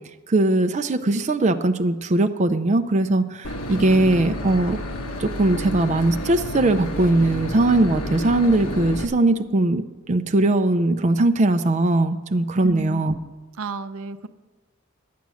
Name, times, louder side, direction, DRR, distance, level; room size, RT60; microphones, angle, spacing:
voice 1, 0.3-4.8 5.2-13.1, right 2 dB, 35° right, 7 dB, 0.5 m, -20 dB
Boat Water vehicle / Engine, 3.4-9.1, left 1 dB, 90° left, 1.1 m, -30 dB
voice 2, 12.6-13.1 13.6-14.3, right 3 dB, 80° right, 11 dB, 0.6 m, -31 dB
11.0 x 9.3 x 6.3 m, 1.2 s
head